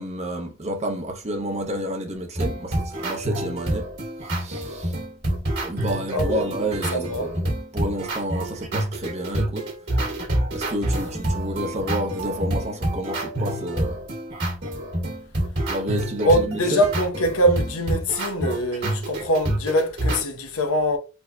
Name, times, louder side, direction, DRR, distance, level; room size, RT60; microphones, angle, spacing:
voice 1, 0.0-3.9 4.3-4.9 5.6-9.7 10.5-14.0 15.7-16.8, right 1 dB, 30° right, 0.8 m, -30 dB
sound 1, 2.4-20.2, right 1 dB, 50° right, 2.1 m, -27 dB
voice 2, 6.1-6.4 6.9-7.3 16.2-21.0, equal, 80° left, 0.9 m, -23 dB
4.3 x 2.8 x 2.2 m
head